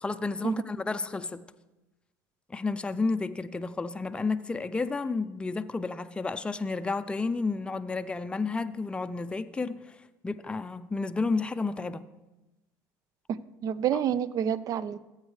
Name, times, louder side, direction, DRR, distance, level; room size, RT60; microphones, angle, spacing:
voice 1, 0.0-1.4 2.5-10.0 10.2-12.1 13.9-14.0, left 3 dB, 15° left, 10 dB, 0.4 m, -31 dB
voice 2, 13.3-15.0, right 9 dB, 50° right, 18 dB, 0.4 m, -29 dB
15.0 x 8.1 x 3.2 m, 1.0 s
supercardioid pair, 90°, 8 cm